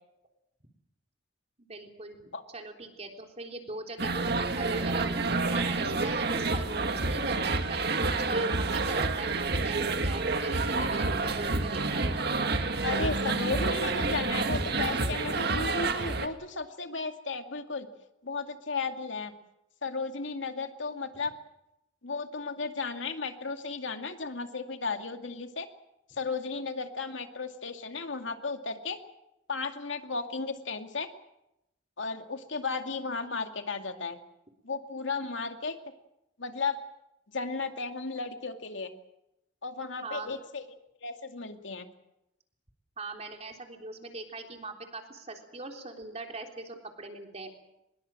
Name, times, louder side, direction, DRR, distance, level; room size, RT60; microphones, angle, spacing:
voice 1, 1.7-5.2 5.5-7.8 8.3-12.1 40.0-40.4 43.0-47.5, right 3 dB, 35° right, 3 dB, 3.6 m, -41 dB
Great Portland St - Albany Pub, 4.0-16.3, right 3 dB, 60° right, 2.0 m, -28 dB
voice 2, 12.8-17.9 18.2-19.3 19.8-21.3 22.0-25.7 26.1-29.0 29.5-31.1 32.0-34.2 34.6-35.8 36.4-36.8 37.3-38.9 39.6-40.7 41.0-41.9, left 4 dB, 85° left, 6 dB, 2.3 m, -34 dB
24.0 x 21.5 x 7.6 m, 0.85 s
head